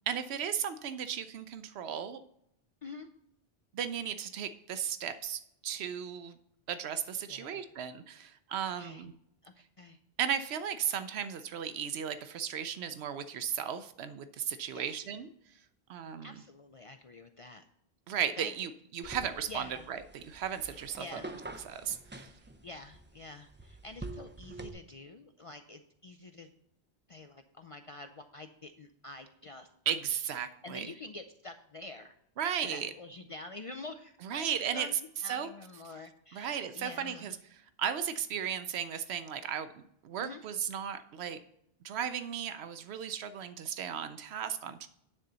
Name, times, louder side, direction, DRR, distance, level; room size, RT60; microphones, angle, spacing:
voice 1, 0.1-2.2 3.7-6.4 6.7-9.1 10.2-15.3 15.9-16.4 18.1-21.2 21.6-22.3 29.9-30.9 32.4-32.9 34.2-34.9 35.3-35.5 36.3-37.4 37.8-39.7 40.0-41.4 41.8-44.9, right 8 dB, 80° right, 11 dB, 0.8 m, -35 dB
voice 2, 8.6-9.0 9.4-10.0 14.7-15.0 16.2-17.6 18.4-18.5 19.5-19.9 21.0-21.3 22.6-26.5 27.1-29.7 30.6-32.2 32.6-37.4 40.2-40.4, left 2 dB, 50° left, 7 dB, 0.4 m, -47 dB
sound 1, 19.0-24.7, right 2 dB, 15° right, 0.4 m, -47 dB
9.6 x 3.9 x 6.7 m, 0.75 s
omnidirectional pair, 1.1 m